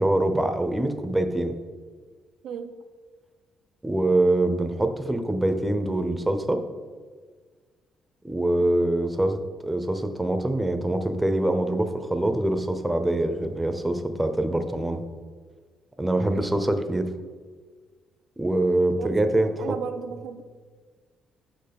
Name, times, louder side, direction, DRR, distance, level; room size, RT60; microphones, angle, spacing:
voice 1, 0.0-1.6 3.8-6.6 8.2-15.0 16.0-17.1 18.4-19.8, right 1 dB, 10° right, 7 dB, 0.6 m, -24 dB
voice 2, 19.0-20.4, right 7 dB, 80° right, 7 dB, 0.5 m, -35 dB
5.8 x 4.6 x 5.1 m, 1.6 s
cardioid pair, 90°, 0 cm